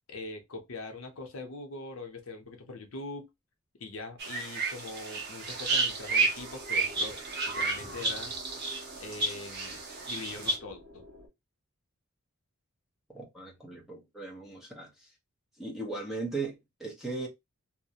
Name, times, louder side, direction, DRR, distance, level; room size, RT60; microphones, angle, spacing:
voice 1, 0.1-3.3 3.8-7.2 7.5-8.4 9.0-9.8 10.1-11.1, left 3 dB, 65° left, 0.6 m, -42 dB
sound 1, 4.2-10.6, right 3 dB, 45° right, 0.7 m, -31 dB
sound 2, 4.2-11.3, left 2 dB, 65° right, 1.1 m, -51 dB
voice 2, 13.1-15.1 15.6-17.3, right 3 dB, ahead, 0.6 m, -38 dB
2.4 x 2.0 x 2.7 m
head